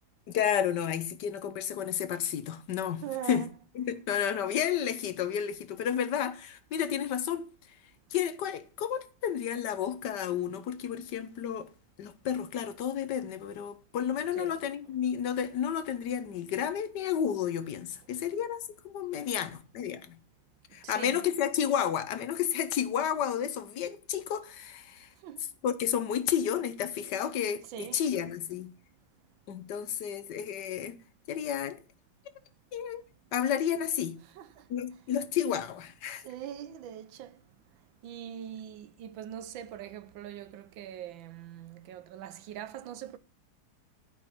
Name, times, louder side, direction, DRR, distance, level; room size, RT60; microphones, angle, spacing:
voice 1, 0.3-3.5 3.7-7.5 8.1-11.7 12.0-20.2 20.7-25.1 25.6-28.7 29.5-31.0 31.3-31.8 32.7-33.0 33.3-34.2 34.7-36.2, left 9 dB, 65° left, 1.4 m, -31 dB
voice 2, 3.0-3.5 14.3-14.5 20.7-21.2 25.1-25.5 27.7-28.0 34.2-35.0 36.1-43.2, right 10 dB, 90° right, 1.6 m, -43 dB
11.5 x 5.4 x 5.9 m
omnidirectional pair, 2.0 m